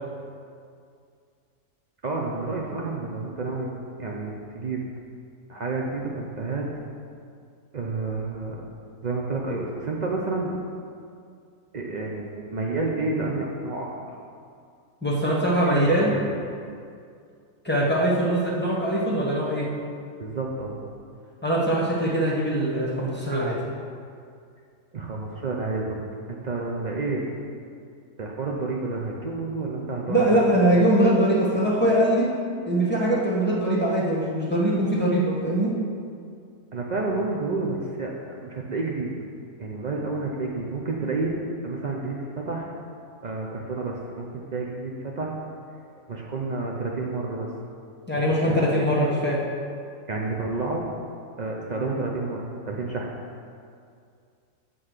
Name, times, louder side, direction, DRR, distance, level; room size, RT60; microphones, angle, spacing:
voice 1, 2.0-3.7 4.0-4.8 5.5-6.7 7.7-8.6 9.0-10.5 11.7-13.9 15.6-16.2 20.2-20.8 24.9-26.0 26.3-27.2 28.2-30.6 36.7-39.1 39.6-41.4 41.6-42.7 43.2-45.3 46.1-47.5 48.4-48.7 50.1-50.8 51.4-53.2, right 3 dB, 90° right, -2 dB, 0.3 m, -30 dB
voice 2, 15.0-16.1 17.6-19.7 21.4-23.6 30.1-32.3 32.7-35.7 48.1-49.4, right 1 dB, 10° left, -5 dB, 1.0 m, -22 dB
7.7 x 3.9 x 6.5 m, 2.3 s
omnidirectional pair, 1.7 m